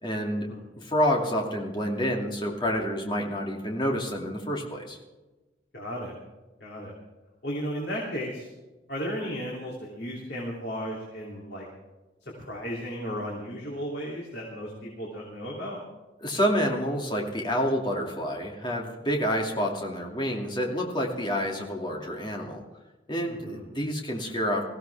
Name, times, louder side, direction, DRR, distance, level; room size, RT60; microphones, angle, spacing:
voice 1, 0.0-0.5 0.7-5.0 16.2-22.6 23.1-24.7, equal, 25° left, 0 dB, 2.5 m, -28 dB
voice 2, 5.7-6.1 6.6-6.9 7.4-8.5 8.9-11.7 12.2-15.8 23.3-23.6, equal, 65° left, -3 dB, 3.0 m, -35 dB
21.0 x 15.5 x 3.5 m, 1.1 s
head